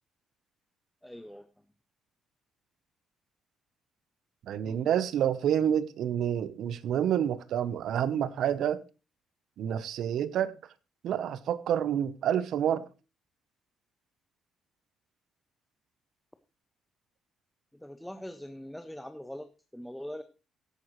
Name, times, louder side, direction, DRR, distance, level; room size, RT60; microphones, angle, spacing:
voice 1, 1.0-1.5 4.6-4.9 17.7-20.2, equal, 5° left, 0.6 m, -42 dB
voice 2, 4.5-8.8 9.6-10.6 11.0-12.9, right 9 dB, 65° right, 0.8 m, -28 dB
16.0 x 8.9 x 3.1 m
cardioid pair, 150°, 0 cm